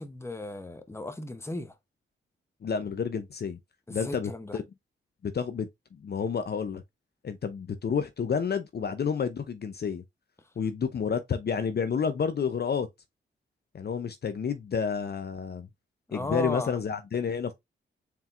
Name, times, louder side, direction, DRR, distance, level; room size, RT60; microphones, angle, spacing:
voice 1, 0.0-1.7 3.9-4.6 16.1-16.8, left 1 dB, 10° left, 0.9 m, -35 dB
voice 2, 2.6-3.6 3.9-4.6 5.2-6.8 7.2-10.0 10.6-12.9 13.7-15.7 16.1-17.5, left 6 dB, 50° left, 0.6 m, -30 dB
4.4 x 3.5 x 2.5 m
cardioid pair, 55°, 21 cm